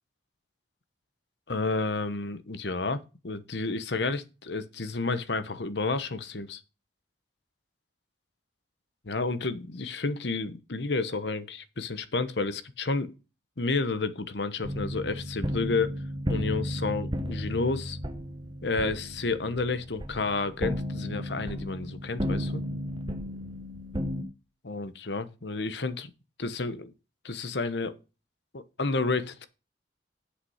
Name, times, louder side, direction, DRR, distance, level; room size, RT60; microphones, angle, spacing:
voice 1, 1.5-6.6 9.1-13.1 13.6-15.9 16.3-18.0 18.6-22.6 24.6-26.1 26.4-26.9 27.2-27.9 28.5-29.5, left 3 dB, 70° left, 1.0 m, -30 dB
sound 1, 14.6-24.2, equal, 25° right, 1.2 m, -34 dB
8.2 x 6.7 x 5.7 m
head